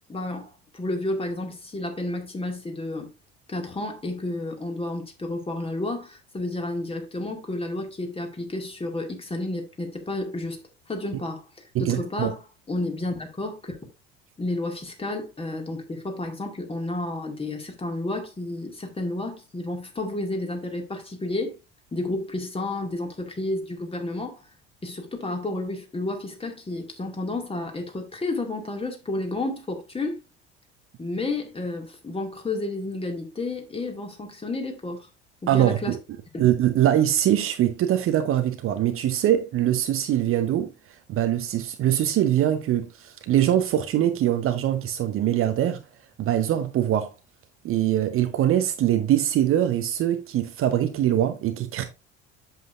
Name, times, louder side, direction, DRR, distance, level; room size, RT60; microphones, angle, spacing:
voice 1, 0.1-3.1 3.5-10.6 10.9-11.5 11.8-12.4 12.7-13.8 14.4-21.6 21.9-24.4 24.8-30.2 31.0-35.1 35.4-36.0 36.3-36.5, left 2 dB, 15° left, 2.2 m, -31 dB
voice 2, 11.7-12.3 35.5-36.0 36.4-40.7 41.1-45.8 46.2-47.1 47.6-51.8, right 11 dB, 40° right, 0.9 m, -23 dB
8.1 x 7.5 x 2.5 m
figure-of-eight pair, 65°, 35 cm